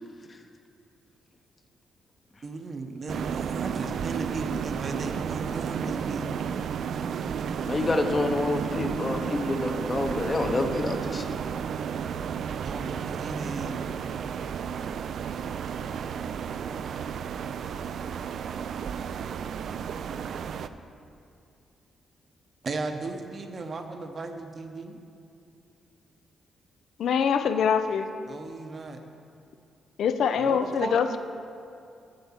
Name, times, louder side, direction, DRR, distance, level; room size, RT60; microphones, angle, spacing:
voice 1, 2.4-6.3 12.6-13.8 22.6-25.0 28.3-29.0 30.4-31.2, right 3 dB, 45° right, 5 dB, 0.8 m, -36 dB
sound 1, 3.1-20.7, right 7 dB, 70° right, 0.3 m, -32 dB
voice 2, 7.6-11.4, left 2 dB, 30° left, 6 dB, 0.8 m, -28 dB
voice 3, 27.0-28.1 30.0-31.2, left 7 dB, 75° left, 9 dB, 0.5 m, -24 dB
7.8 x 6.8 x 7.2 m, 2.5 s
cardioid pair, 100°, 0 cm